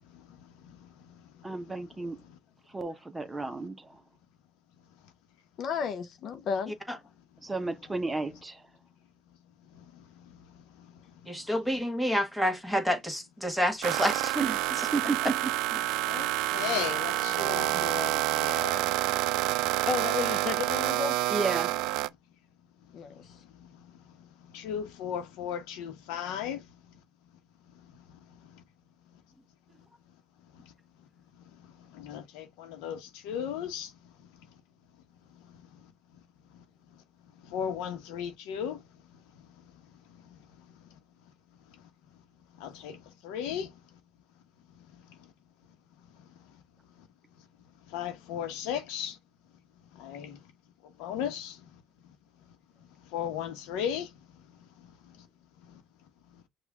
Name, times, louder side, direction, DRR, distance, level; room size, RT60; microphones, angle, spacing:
voice 1, 1.4-2.2 2.7-4.0 7.4-8.6 14.4-15.5 21.3-21.8, right 3 dB, 15° right, 0.9 m, -33 dB
voice 2, 5.6-6.7 19.8-21.2 22.9-23.2, left 6 dB, 55° left, 0.6 m, -32 dB
voice 3, 11.3-14.5, equal, ahead, 1.4 m, -28 dB
sound 1, 13.8-22.1, right 17 dB, 80° right, 0.3 m, -28 dB
voice 4, 16.1-18.8 24.5-26.6 32.0-33.9 37.5-38.8 42.6-43.0 43.2-43.7 47.9-49.2 50.0-50.4 51.0-51.6 53.1-54.1, left 9 dB, 85° left, 1.0 m, -35 dB
6.0 x 2.4 x 3.5 m
cardioid pair, 100°, 0 cm